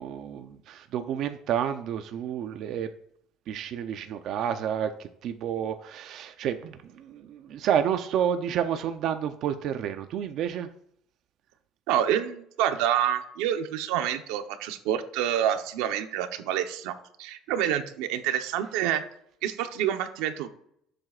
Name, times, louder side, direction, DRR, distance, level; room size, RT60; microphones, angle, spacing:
voice 1, 0.0-2.9 3.5-10.7, right 9 dB, 50° right, 8 dB, 0.6 m, -30 dB
voice 2, 11.9-19.0 19.4-20.5, right 10 dB, 85° right, 8 dB, 0.9 m, -27 dB
17.5 x 7.7 x 2.5 m, 0.70 s
cardioid pair, 160°, 0 cm